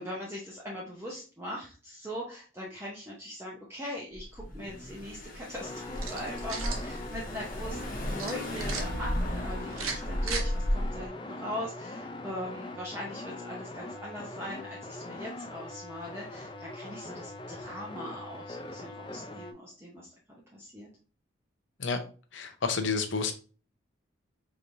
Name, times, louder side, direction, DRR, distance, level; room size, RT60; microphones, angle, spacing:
voice 1, 0.0-20.1 20.5-20.9, equal, 10° right, -4 dB, 0.7 m, -40 dB
Car / Engine, 4.1-11.1, equal, 40° left, 0.9 m, -34 dB
sound 1, 5.6-19.5, left 2 dB, 25° left, 0.3 m, -42 dB
sound 2, 5.9-6.9 8.2-8.8 9.7-10.4, right 5 dB, 90° right, 0.8 m, -36 dB
voice 2, 22.3-23.3, left 4 dB, 65° left, 8 dB, 0.6 m, -30 dB
5.0 x 3.0 x 2.6 m, 0.37 s
head